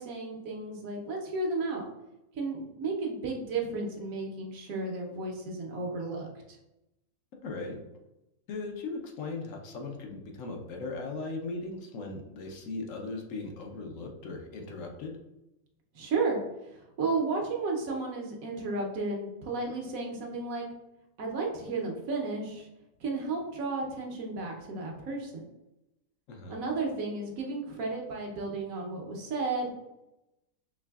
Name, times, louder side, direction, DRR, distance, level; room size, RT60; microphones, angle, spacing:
voice 1, 0.0-1.8 2.3-6.3 15.9-16.4 17.0-20.7 21.2-22.7 23.0-25.3 26.5-29.7, right 3 dB, 75° right, 0 dB, 1.2 m, -33 dB
voice 2, 7.4-7.8 8.5-15.1 26.3-26.6, left 3 dB, 70° left, 2 dB, 1.0 m, -38 dB
4.7 x 3.3 x 2.3 m, 0.93 s
omnidirectional pair, 1.5 m